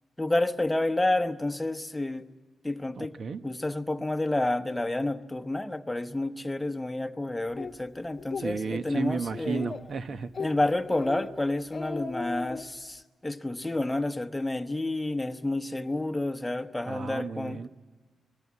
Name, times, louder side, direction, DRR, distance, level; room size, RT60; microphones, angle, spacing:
voice 1, 0.2-2.3 2.6-3.2 3.4-9.7 10.4-17.6, left 2 dB, 10° left, 6 dB, 1.0 m, -29 dB
voice 2, 3.0-3.4 8.4-10.3 16.9-17.7, right 5 dB, 55° right, 9 dB, 1.1 m, -33 dB
Speech, 7.6-7.7 8.2-8.5 8.9-9.0 9.3-9.9 10.3-10.5 10.9-11.3 11.6-12.6, left 4 dB, 40° left, 1.1 m, -37 dB
26.5 x 20.5 x 8.5 m, 1.4 s
cardioid pair, 120°, 0 cm